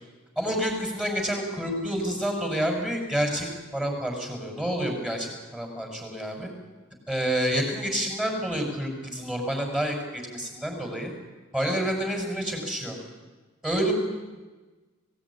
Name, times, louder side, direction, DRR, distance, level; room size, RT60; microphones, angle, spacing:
voice 1, 0.4-3.5 3.7-6.5 7.1-11.1 11.5-13.0 13.6-13.9, right 1 dB, 5° right, 2 dB, 5.8 m, -28 dB
25.0 x 17.5 x 9.8 m, 1.3 s
head